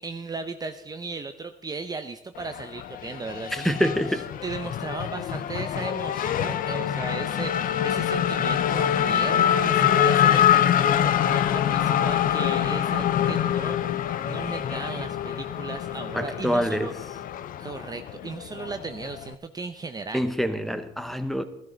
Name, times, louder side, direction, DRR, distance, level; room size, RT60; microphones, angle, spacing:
voice 1, 0.0-3.9 4.4-16.9 17.6-20.3, right 4 dB, 20° right, 8 dB, 0.7 m, -36 dB
Race car auto racing / Accelerating revving vroom, 2.4-19.3, left 10 dB, 55° left, 0.6 m, -25 dB
voice 2, 3.5-4.3 16.1-16.9 20.1-21.4, equal, ahead, 10 dB, 1.0 m, -26 dB
14.5 x 13.0 x 4.0 m, 0.86 s
cardioid pair, 110°, 17 cm